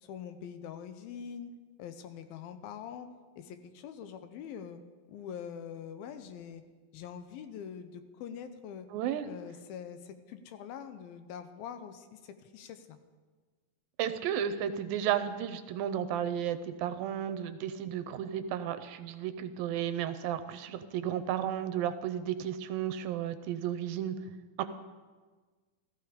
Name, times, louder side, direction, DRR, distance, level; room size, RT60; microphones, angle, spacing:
voice 1, 0.0-1.5 1.8-3.1 3.4-4.8 5.1-6.6 6.9-8.9 9.3-13.0, left 8 dB, 80° left, 9 dB, 2.6 m, -44 dB
voice 2, 8.9-9.3 14.0-24.2 24.6-24.7, right 10 dB, 80° right, 11 dB, 2.3 m, -33 dB
15.0 x 14.5 x 5.1 m, 1.4 s
omnidirectional pair, 4.3 m